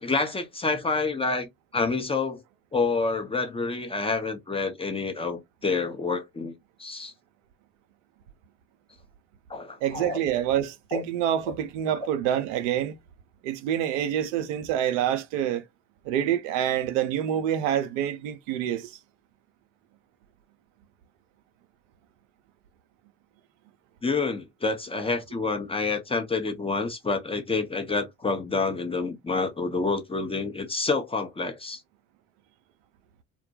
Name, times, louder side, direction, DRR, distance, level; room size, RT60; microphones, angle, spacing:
voice 1, 0.0-2.4 2.7-6.5 6.8-7.1 9.5-10.2 10.9-11.0 24.0-31.8, left 3 dB, 15° left, 0.6 m, -28 dB
voice 2, 9.8-13.0 13.4-15.6 16.1-19.0, right 10 dB, 75° right, 0.5 m, -27 dB
2.2 x 2.1 x 2.7 m
hypercardioid pair, 45°, 38 cm